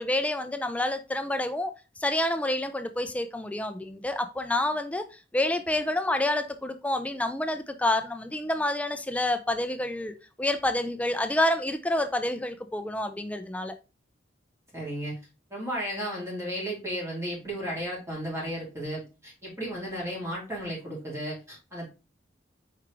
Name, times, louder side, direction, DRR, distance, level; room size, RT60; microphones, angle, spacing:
voice 1, 0.0-1.7 2.0-5.0 5.3-13.7, left 1 dB, 10° left, 0.4 m, -28 dB
voice 2, 14.7-15.1 15.5-21.9, equal, 15° right, 2.0 m, -34 dB
4.8 x 3.6 x 3.0 m
head